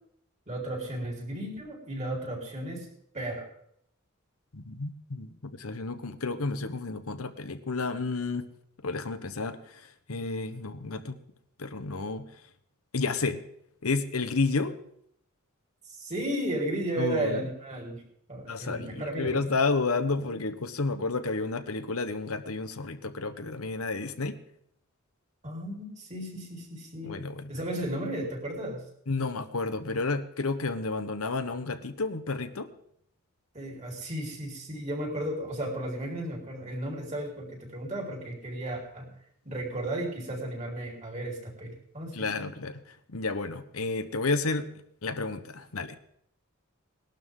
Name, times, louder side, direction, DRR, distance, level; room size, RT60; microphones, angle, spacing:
voice 1, 0.5-2.9 3.1-3.5 15.9-18.0 18.3-19.5 25.4-27.2 27.5-28.8 33.5-39.1 39.4-42.5, right 1 dB, 35° right, -1 dB, 4.3 m, -34 dB
voice 2, 4.5-8.5 8.8-11.2 11.6-12.2 12.9-13.4 13.8-14.8 17.0-17.4 18.5-24.4 27.0-27.5 29.1-32.7 42.1-44.7 45.0-46.0, left 3 dB, 85° left, 10 dB, 1.1 m, -31 dB
19.5 x 12.0 x 3.8 m, 0.71 s
head